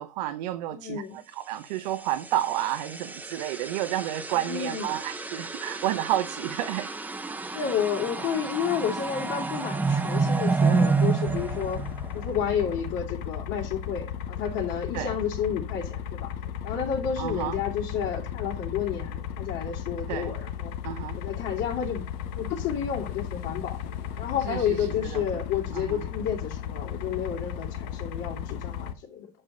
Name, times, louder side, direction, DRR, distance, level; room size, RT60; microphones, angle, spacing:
voice 1, 0.0-6.9 11.6-11.7 14.9-15.2 17.2-17.6 20.1-20.4 20.8-21.2 24.5-25.3 25.7-26.1, right 13 dB, 90° right, 0.8 m, -31 dB
voice 2, 0.7-1.2 4.5-4.9 7.4-11.8 12.1-16.3 16.6-20.7 21.1-22.0 22.3-23.8 24.2-29.3, left 8 dB, 60° left, 2.5 m, -31 dB
sound 1, 1.8-12.5, right 4 dB, 10° right, 0.8 m, -29 dB
sound 2, 11.3-28.9, left 9 dB, 75° left, 1.1 m, -35 dB
7.9 x 5.9 x 5.1 m
supercardioid pair, 135°, 21 cm